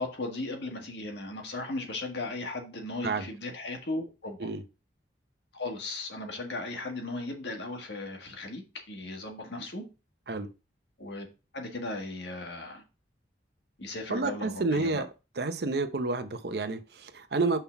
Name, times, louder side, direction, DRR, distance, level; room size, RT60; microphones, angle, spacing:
voice 1, 0.0-4.5 5.5-9.8 11.0-11.3 11.5-12.8 13.8-15.0, left 2 dB, 70° left, 1.7 m, -37 dB
voice 2, 14.1-15.1 15.4-17.6, right 3 dB, 60° right, 0.7 m, -29 dB
5.6 x 3.8 x 5.7 m
head